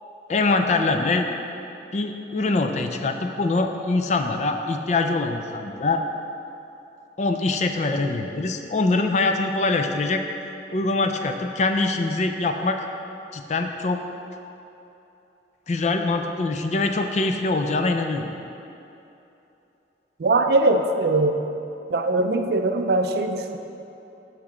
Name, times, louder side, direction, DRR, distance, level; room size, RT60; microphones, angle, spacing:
voice 1, 0.3-1.3 1.9-6.0 7.2-10.2 10.7-12.8 13.3-14.0 15.7-18.3, left 3 dB, 40° left, 5 dB, 0.4 m, -23 dB
voice 2, 20.2-21.4 21.9-23.6, right 2 dB, 60° right, 6 dB, 0.4 m, -21 dB
8.5 x 3.1 x 6.0 m, 2.9 s
head